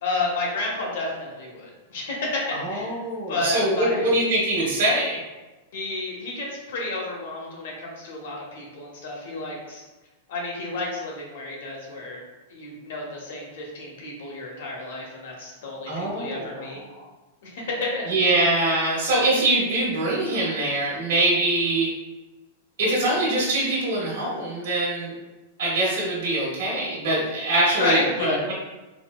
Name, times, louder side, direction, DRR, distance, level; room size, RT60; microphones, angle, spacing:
voice 1, 0.0-3.0 3.3-4.1 5.7-9.8 10.3-12.2 12.5-16.8 17.4-18.4 27.8-28.4, left 2 dB, 70° left, -2 dB, 0.9 m, -30 dB
voice 2, 2.5-5.2 15.9-17.0 18.1-21.9 22.8-25.1 25.6-28.5, right 2 dB, 70° right, -6 dB, 1.1 m, -23 dB
3.9 x 2.1 x 2.3 m, 1.1 s
supercardioid pair, 160°, 0 cm